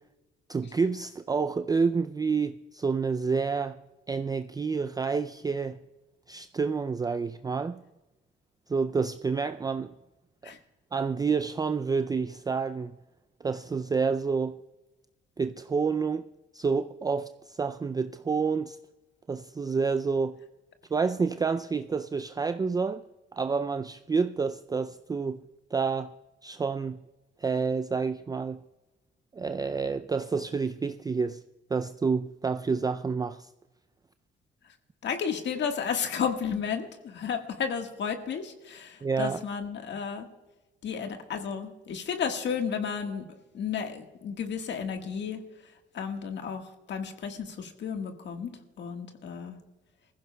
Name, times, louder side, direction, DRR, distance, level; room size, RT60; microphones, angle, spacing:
voice 1, 0.5-3.8 4.1-5.8 6.3-7.8 8.7-9.9 10.4-10.5 10.9-13.0 13.4-14.6 15.4-16.3 16.5-18.8 19.3-20.4 20.9-23.0 23.3-25.4 25.7-26.1 26.4-27.0 27.4-28.6 29.3-31.4 31.7-33.5 39.0-39.4, right 5 dB, 20° right, 0.4 m, -29 dB
voice 2, 35.0-40.3 40.8-43.2 43.5-45.4 45.9-48.5 48.8-49.6, left 7 dB, 65° left, 1.5 m, -32 dB
21.0 x 15.0 x 2.2 m
cardioid pair, 90°, 20 cm